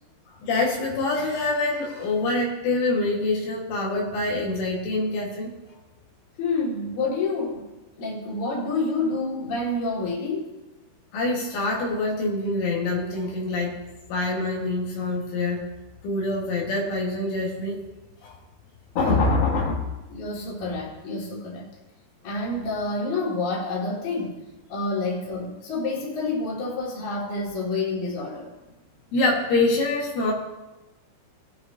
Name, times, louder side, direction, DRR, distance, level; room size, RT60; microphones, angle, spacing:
voice 1, 0.4-5.5 11.1-13.8 14.1-15.6 16.0-17.8 18.2-18.4 19.0-19.8 29.1-30.3, left 2 dB, 80° left, -2 dB, 4.2 m, -25 dB
voice 2, 6.4-7.7 8.0-10.5 19.0-19.2 20.1-21.7 22.2-24.4 24.7-28.5, left 3 dB, 45° left, -4 dB, 3.3 m, -28 dB
20.0 x 9.5 x 2.8 m, 1.0 s
omnidirectional pair, 5.5 m